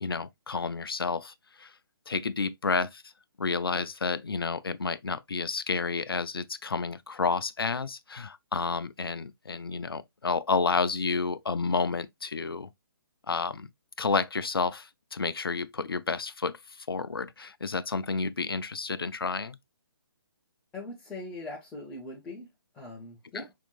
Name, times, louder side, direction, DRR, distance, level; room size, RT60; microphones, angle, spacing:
voice 1, 0.0-1.7 2.1-3.0 3.4-12.7 13.3-13.7 14.0-19.6, left 4 dB, 75° left, 0.6 m, -30 dB
voice 2, 20.7-22.5 22.7-23.5, left 2 dB, 10° left, 1.3 m, -41 dB
5.9 x 3.6 x 2.5 m
figure-of-eight pair, 140°, 12 cm